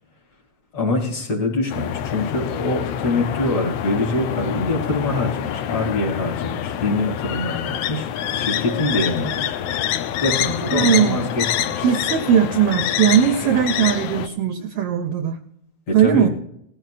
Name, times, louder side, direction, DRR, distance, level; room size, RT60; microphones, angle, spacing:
voice 1, 0.7-9.8 10.2-11.9 15.9-16.3, left 2 dB, 50° left, -2 dB, 3.4 m, -24 dB
sound 1, 1.7-14.3, left 10 dB, 75° left, 1.5 m, -26 dB
voice 2, 10.7-11.3 11.8-15.4 15.9-16.3, right 8 dB, 75° right, 7 dB, 1.4 m, -19 dB
18.5 x 13.5 x 2.5 m, 0.77 s
omnidirectional pair, 3.4 m